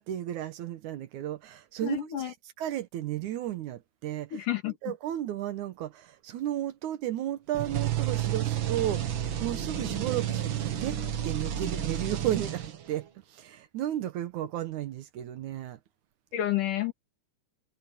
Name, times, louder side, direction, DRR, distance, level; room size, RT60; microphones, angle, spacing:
voice 1, 0.0-4.4 4.8-15.8, right 12 dB, 75° right, 2.4 m, -34 dB
voice 2, 1.8-2.3 4.3-4.8 16.3-16.9, left 12 dB, 80° left, 3.7 m, -30 dB
sound 1, 7.5-13.0, right 10 dB, 50° right, 1.7 m, -31 dB
omnidirectional pair, 3.6 m